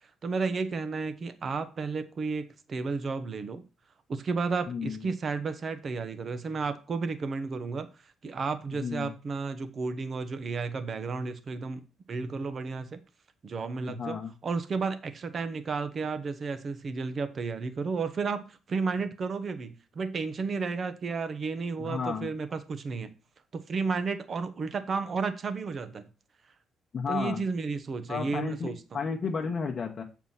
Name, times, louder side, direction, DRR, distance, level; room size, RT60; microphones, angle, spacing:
voice 1, 0.2-3.6 4.1-7.9 8.2-13.0 13.4-23.1 23.5-26.0 27.1-29.0, right 4 dB, 40° right, 1.0 m, -32 dB
voice 2, 4.7-5.1 8.7-9.1 13.9-14.3 21.8-22.3 26.9-27.4 28.1-30.0, left 5 dB, 40° left, 1.1 m, -33 dB
7.5 x 4.7 x 5.6 m
cardioid pair, 110°, 0 cm